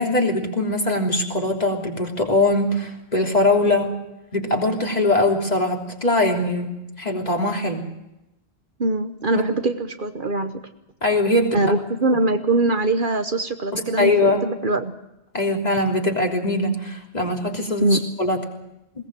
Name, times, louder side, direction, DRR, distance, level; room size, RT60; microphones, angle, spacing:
voice 1, 0.0-3.9 4.3-6.7 7.0-7.8 11.0-11.6 13.7-14.5 15.3-18.4, left 2 dB, 40° left, 0 dB, 3.5 m, -21 dB
voice 2, 8.8-10.6 11.5-14.9 17.8-18.0, right 2 dB, 50° right, 8 dB, 1.3 m, -22 dB
21.5 x 18.0 x 7.7 m, 0.90 s
omnidirectional pair, 1.1 m